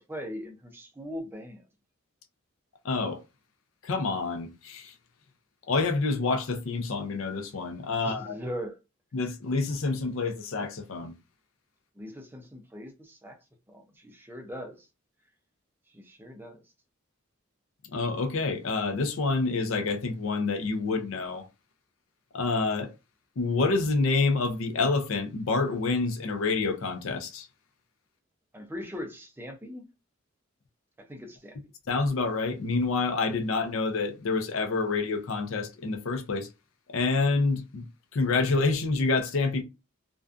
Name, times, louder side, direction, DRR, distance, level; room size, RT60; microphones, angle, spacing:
voice 1, 0.0-1.6 8.0-8.8 12.0-13.4 13.7-14.9 15.9-16.6 28.5-29.8 31.1-31.6, equal, 10° right, 0.4 m, -40 dB
voice 2, 2.8-3.2 3.8-4.9 5.7-8.4 9.1-11.1 17.9-21.5 22.3-22.9 23.4-27.5 31.9-36.5 36.9-37.9 38.1-39.6, left 3 dB, 75° left, 0.5 m, -27 dB
2.5 x 2.2 x 2.4 m
head